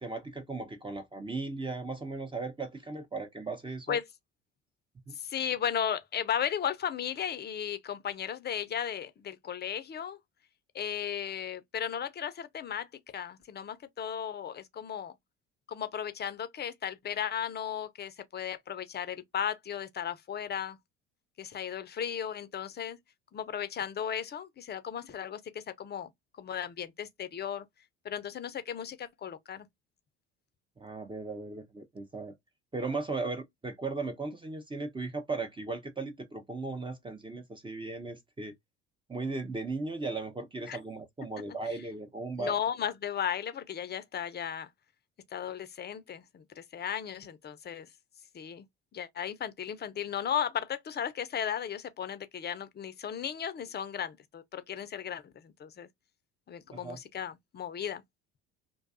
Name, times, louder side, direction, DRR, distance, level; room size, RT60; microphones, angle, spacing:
voice 1, 0.0-4.0 5.1-5.2 30.8-32.3 32.7-38.5 39.1-42.6 56.7-57.0, right 3 dB, 15° right, 0.6 m, -37 dB
voice 2, 5.1-10.2 10.7-12.9 13.1-15.1 15.7-20.8 21.4-23.0 23.3-26.1 26.4-27.7 28.0-29.7 40.7-40.8 42.4-44.7 45.3-47.9 48.3-48.6 48.9-55.9 56.5-58.0, left 8 dB, 30° left, 0.5 m, -35 dB
2.5 x 2.3 x 2.3 m
hypercardioid pair, 70°, 33 cm